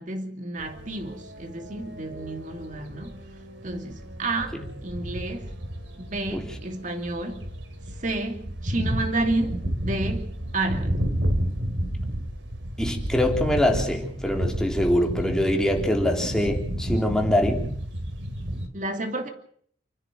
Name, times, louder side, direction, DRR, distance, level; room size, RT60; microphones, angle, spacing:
voice 1, 0.0-3.2 3.6-5.5 6.0-7.4 8.0-11.0 18.7-19.3, right 2 dB, 45° right, 2.7 m, -30 dB
sound 1, 0.6-18.7, equal, 85° right, 3.1 m, -31 dB
voice 2, 12.8-17.7, left 1 dB, 5° left, 3.7 m, -24 dB
30.0 x 10.0 x 9.0 m
head